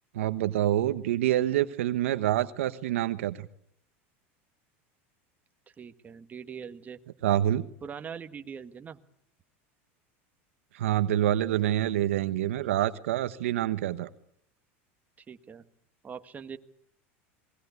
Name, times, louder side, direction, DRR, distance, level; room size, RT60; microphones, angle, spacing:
voice 1, 0.1-3.5 7.2-7.7 10.7-14.1, right 12 dB, 85° right, 12 dB, 1.2 m, -26 dB
voice 2, 5.8-7.0 7.8-9.0 15.3-15.6 16.0-16.6, right 7 dB, 25° right, 8 dB, 1.7 m, -42 dB
28.5 x 20.5 x 8.4 m, 0.69 s
supercardioid pair, 115°, 7 cm